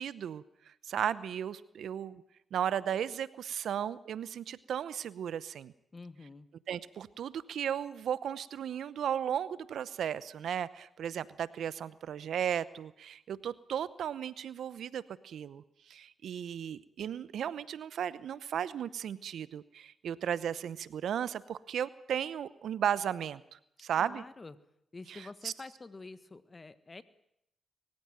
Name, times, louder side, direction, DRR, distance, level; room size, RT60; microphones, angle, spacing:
voice 1, 0.0-2.2 2.5-5.7 6.7-24.2 25.1-25.5, right 9 dB, 75° right, 17 dB, 0.8 m, -35 dB
voice 2, 5.9-6.5 24.0-24.6 24.9-27.0, left 3 dB, 35° left, 13 dB, 1.6 m, -47 dB
22.0 x 15.0 x 9.1 m, 0.77 s
supercardioid pair, 50°, 0 cm